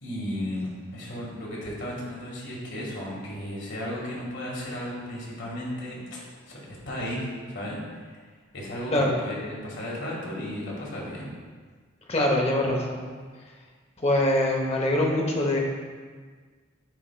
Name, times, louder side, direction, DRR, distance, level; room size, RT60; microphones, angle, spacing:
voice 1, 0.0-6.2 6.4-8.2 8.5-11.3, equal, 65° left, -4 dB, 1.7 m, -34 dB
voice 2, 12.1-13.0 14.0-15.6, left 1 dB, 30° left, 0 dB, 0.9 m, -23 dB
10.0 x 4.4 x 2.3 m, 1.5 s
head